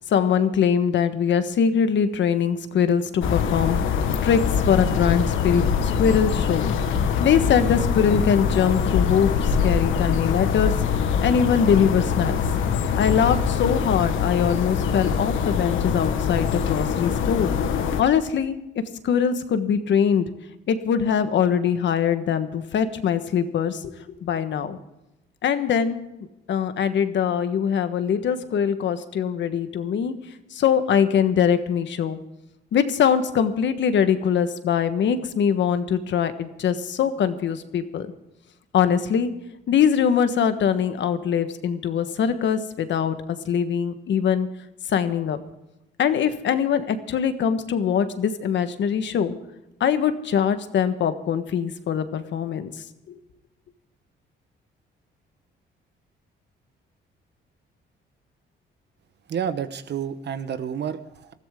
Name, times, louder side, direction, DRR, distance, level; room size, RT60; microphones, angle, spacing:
voice 1, 0.1-4.4 4.7-6.7 7.2-10.7 11.2-12.4 12.9-17.5 18.0-18.5 19.0-20.3 20.7-23.9 24.2-24.8 25.4-26.0 26.5-30.1 30.5-32.2 32.7-38.1 38.7-39.3 39.7-43.2 43.4-44.5 44.9-45.4 46.0-49.3 49.8-52.7 53.1-53.2, left 7 dB, 65° left, 10 dB, 1.4 m, -22 dB
sound 1, 3.2-18.0, left 6 dB, 85° left, 1.5 m, -23 dB
voice 2, 59.3-61.3, right 8 dB, 60° right, 11 dB, 1.2 m, -30 dB
20.5 x 14.0 x 3.7 m, 0.93 s
cardioid pair, 90°, 20 cm